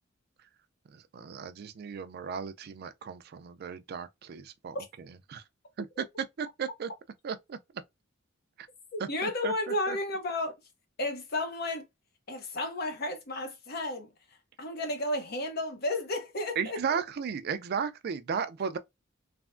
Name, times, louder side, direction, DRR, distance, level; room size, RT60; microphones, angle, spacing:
voice 1, 0.9-5.4 5.8-6.9 7.2-7.6 8.6-8.7 9.0-10.0 16.6-18.8, right 6 dB, 50° right, 0.4 m, -35 dB
voice 2, 8.9-10.6 11.0-11.9 12.3-14.1 14.6-16.8, left 1 dB, 50° left, 0.7 m, -32 dB
3.4 x 2.1 x 2.4 m
head